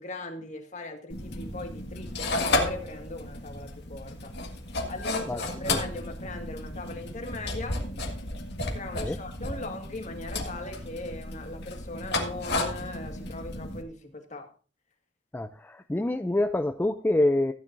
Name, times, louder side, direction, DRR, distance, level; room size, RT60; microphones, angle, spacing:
voice 1, 0.0-7.8 8.7-14.5, left 2 dB, 40° left, 5 dB, 1.8 m, -40 dB
sound 1, 1.1-13.8, left 2 dB, 60° left, 1.8 m, -33 dB
voice 2, 15.3-17.5, left 1 dB, 10° left, 8 dB, 0.4 m, -26 dB
15.0 x 9.6 x 2.6 m, 0.38 s
head